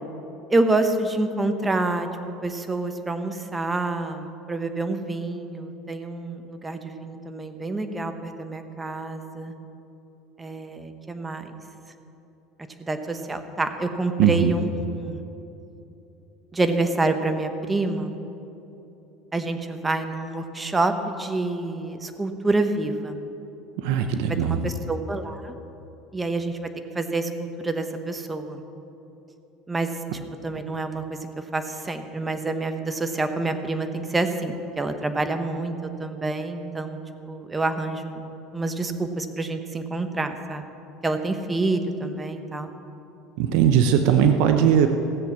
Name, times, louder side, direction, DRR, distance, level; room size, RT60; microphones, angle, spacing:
voice 1, 0.5-2.1 2.4-9.5 10.4-11.5 12.9-15.2 16.5-18.2 19.3-23.2 24.3-25.5 26.1-26.7 26.9-28.6 29.7-30.0 30.4-31.2 31.5-37.0 37.3-38.2 38.5-40.6 41.0-42.7, right 2 dB, 15° right, 7 dB, 0.9 m, -27 dB
voice 2, 14.2-14.5 23.8-24.6 43.4-44.9, right 8 dB, 70° right, 7 dB, 0.8 m, -19 dB
16.5 x 7.8 x 7.2 m, 3.0 s
cardioid pair, 135°, 0 cm